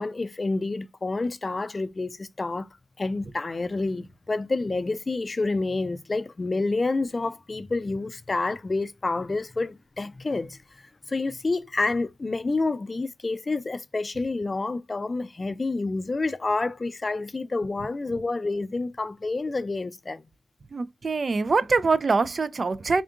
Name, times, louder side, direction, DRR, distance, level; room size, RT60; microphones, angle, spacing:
voice 1, 0.0-2.7 3.0-10.6 11.1-20.2, left 3 dB, 35° left, 0.4 m, -28 dB
voice 2, 20.7-23.0, right 4 dB, 45° right, 0.3 m, -24 dB
3.6 x 2.4 x 3.5 m
cardioid pair, 85°, 0 cm